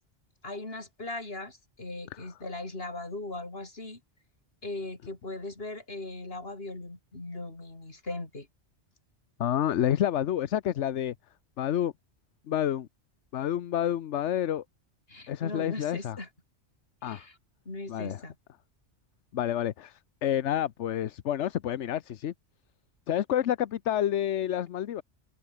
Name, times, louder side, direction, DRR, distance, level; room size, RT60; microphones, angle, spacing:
voice 1, 0.4-4.0 4.6-8.5 15.1-16.3 17.0-17.4 17.7-18.3, left 2 dB, 55° left, 4.3 m, -39 dB
voice 2, 9.4-11.1 11.6-11.9 12.5-12.9 13.3-14.6 15.3-16.2 17.0-17.3 17.9-18.2 19.3-22.3 23.1-25.0, left 11 dB, 80° left, 1.1 m, -29 dB
omnidirectional pair, 1.2 m